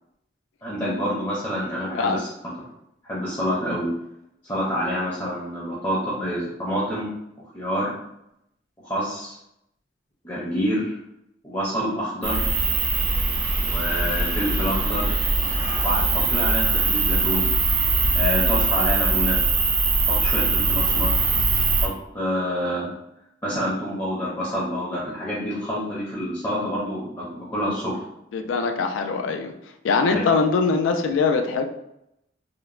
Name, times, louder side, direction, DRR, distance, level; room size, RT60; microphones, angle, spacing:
voice 1, 0.6-2.3 3.0-3.9 4.5-7.1 7.5-7.9 8.8-9.4 10.2-11.0 11.4-12.4 13.6-15.1 15.8-17.5 18.1-19.4 20.1-21.1 21.8-22.9 23.4-27.9 30.1-30.2, equal, 20° left, -7 dB, 0.5 m, -27 dB
sound 1, 12.2-21.9, right 3 dB, 75° right, 0.6 m, -22 dB
voice 2, 28.3-29.5 29.8-31.7, left 4 dB, 90° left, 5 dB, 0.3 m, -22 dB
3.1 x 2.0 x 2.4 m, 0.81 s
head